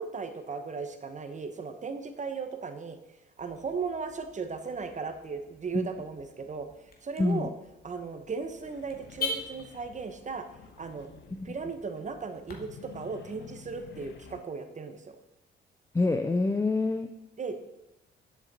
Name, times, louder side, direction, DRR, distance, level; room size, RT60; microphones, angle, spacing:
voice 1, 0.0-3.0 3.4-6.7 7.0-7.5 7.8-10.5 10.8-11.1 11.4-15.2 17.4-17.6, right 5 dB, 40° right, 8 dB, 1.1 m, -36 dB
Car / Alarm, 3.4-12.6, left 3 dB, 50° left, 2.1 m, -43 dB
voice 2, 7.2-7.5 11.3-11.5 15.9-17.1, left 3 dB, 15° left, 8 dB, 0.5 m, -26 dB
sound 1, 8.6-11.8 12.5-14.4, left 7 dB, 65° left, 1.0 m, -51 dB
10.5 x 7.2 x 4.2 m, 0.92 s
cardioid pair, 90°, 20 cm